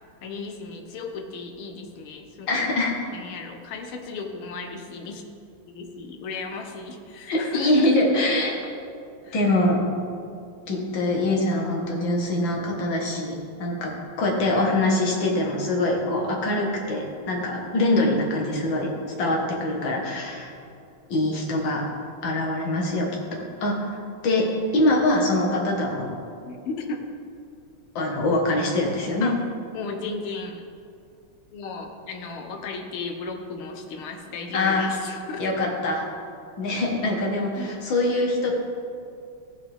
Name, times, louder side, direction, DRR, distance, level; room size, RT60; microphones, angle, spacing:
voice 1, 0.2-2.7 3.1-5.2 5.7-7.9 9.2-9.6 26.4-27.0 29.2-29.4 29.7-30.6 31.5-35.5 37.6-37.8, left 4 dB, 85° left, 4 dB, 1.8 m, -35 dB
voice 2, 2.5-3.0 7.3-8.5 9.3-9.8 10.7-13.9 14.2-18.9 19.2-20.5 21.1-21.8 22.2-24.0 24.2-24.5 24.7-26.1 28.0-29.3 34.5-34.9 35.4-36.0 36.6-38.5, left 1 dB, 65° left, 0 dB, 2.2 m, -23 dB
14.5 x 7.4 x 3.4 m, 2.4 s
omnidirectional pair, 2.3 m